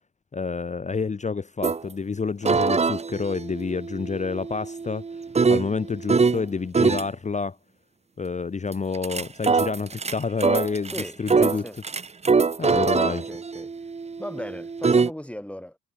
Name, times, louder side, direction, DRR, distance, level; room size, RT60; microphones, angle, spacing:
voice 1, 0.3-5.0 5.5-7.6 8.2-10.9 11.2-11.6 12.6-13.3, left 5 dB, 25° left, 0.8 m, -28 dB
sound 1, 1.6-1.8 2.4-6.4 6.7-7.1 8.7-15.1, right 4 dB, 20° right, 0.8 m, -23 dB
voice 2, 10.9-11.8 12.7-13.7 14.2-15.8, left 1 dB, 5° left, 4.3 m, -38 dB
cardioid pair, 90°, 30 cm